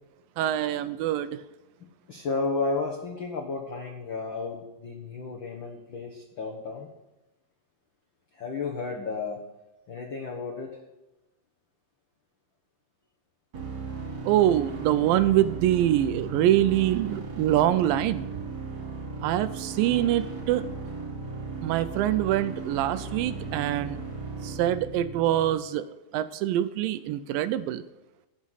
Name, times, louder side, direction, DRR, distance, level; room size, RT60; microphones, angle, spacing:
voice 1, 0.4-1.4 14.3-18.3 19.2-20.7 21.6-24.0 24.4-25.9 26.1-27.8, right 12 dB, 80° right, 12 dB, 2.2 m, -24 dB
voice 2, 2.1-6.9 8.3-9.4 9.9-10.8 19.9-20.1, left 4 dB, 70° left, 0 dB, 1.1 m, -33 dB
sound 1, 13.5-25.5, right 4 dB, 35° right, 3.5 m, -36 dB
17.5 x 6.4 x 4.0 m, 1.0 s
omnidirectional pair, 4.2 m